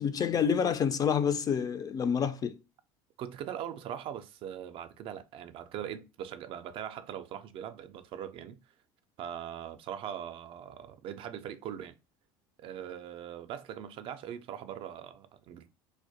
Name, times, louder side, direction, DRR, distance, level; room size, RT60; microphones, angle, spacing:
voice 1, 0.0-2.6, left 7 dB, 30° left, 0.3 m, -28 dB
voice 2, 3.2-8.6 9.2-12.0 12.6-15.7, right 9 dB, 50° right, 0.3 m, -41 dB
2.1 x 2.1 x 2.7 m
supercardioid pair, 95°, 12 cm